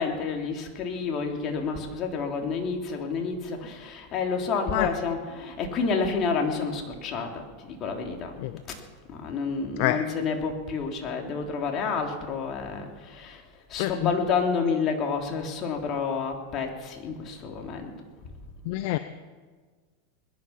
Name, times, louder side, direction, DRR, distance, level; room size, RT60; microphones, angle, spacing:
voice 1, 0.0-7.3 7.7-8.3 9.1-13.4 13.7-17.9, left 5 dB, 40° left, 2 dB, 3.1 m, -29 dB
voice 2, 13.8-14.1 18.7-19.0, left 16 dB, 60° left, 11 dB, 0.7 m, -26 dB
20.5 x 11.0 x 5.9 m, 1.5 s
hypercardioid pair, 110°, 0 cm